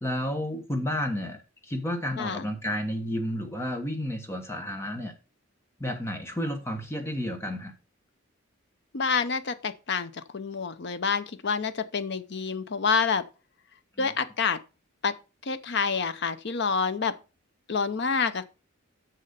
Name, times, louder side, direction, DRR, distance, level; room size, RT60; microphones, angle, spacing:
voice 1, 0.0-5.2 5.8-7.7 14.0-14.1, equal, 10° left, 1.1 m, -31 dB
voice 2, 8.9-13.3 14.0-14.6 15.0-15.1 15.5-17.2 17.7-18.4, left 5 dB, 55° left, 0.7 m, -28 dB
6.6 x 6.5 x 5.3 m
head